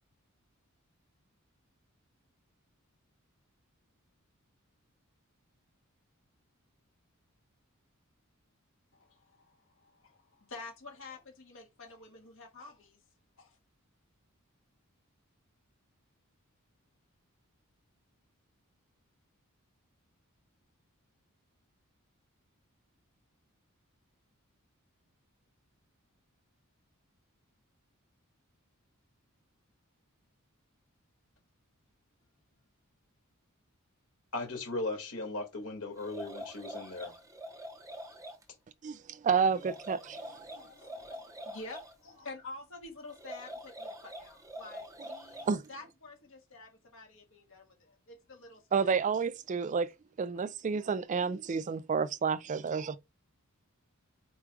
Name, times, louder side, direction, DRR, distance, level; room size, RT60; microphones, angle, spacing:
voice 1, 8.9-13.0 13.4-13.6 40.5-48.9, left 3 dB, 65° left, 1.7 m, -49 dB
voice 2, 34.3-37.1, left 2 dB, 85° left, 2.3 m, -37 dB
sound 1, 36.0-38.4 39.5-41.9 43.1-45.7, equal, 15° right, 0.8 m, -45 dB
voice 3, 38.8-40.5 45.5-45.6 48.7-49.9 50.2-53.0, right 6 dB, 35° right, 0.3 m, -30 dB
4.4 x 2.4 x 4.6 m
head